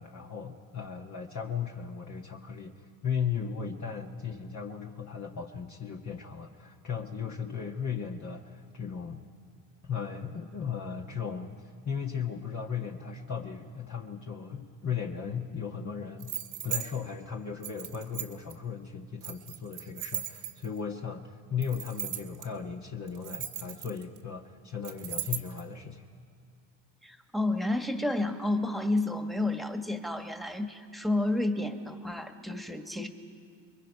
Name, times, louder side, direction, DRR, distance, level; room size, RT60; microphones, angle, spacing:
voice 1, 0.0-9.2 9.8-11.5 11.8-16.3 16.6-26.0, left 6 dB, 40° left, 1 dB, 1.4 m, -36 dB
sound 1, 16.2-16.9 17.6-18.5 19.2-20.8 21.6-22.4 23.1-24.2 24.8-25.6, right 12 dB, 85° right, 2.1 m, -37 dB
voice 2, 27.0-33.1, left 2 dB, ahead, 6 dB, 1.7 m, -30 dB
30.0 x 22.0 x 5.5 m, 2.3 s
supercardioid pair, 85°, 44 cm